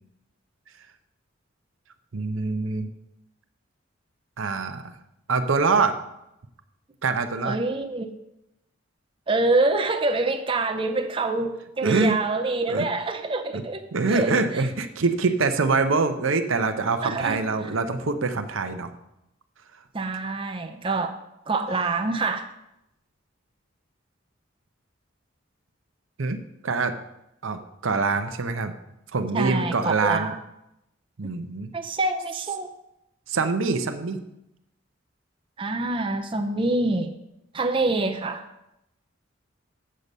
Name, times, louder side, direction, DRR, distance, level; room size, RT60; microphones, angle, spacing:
voice 1, 2.1-2.9 4.4-4.8 5.3-6.0 7.0-7.6 11.8-12.2 12.7-12.9 13.5-13.6 13.9-18.9 26.2-27.0 27.4-28.7 29.1-30.3 31.2-31.7 33.3-34.2, right 4 dB, 85° right, 8 dB, 0.7 m, -24 dB
voice 2, 7.4-8.1 9.3-14.6 17.0-17.4 19.9-21.1 21.5-22.5 29.3-30.4 31.7-32.7 35.6-37.1 37.5-38.4, right 3 dB, 25° right, 6 dB, 0.5 m, -26 dB
7.6 x 6.7 x 5.4 m, 0.86 s
head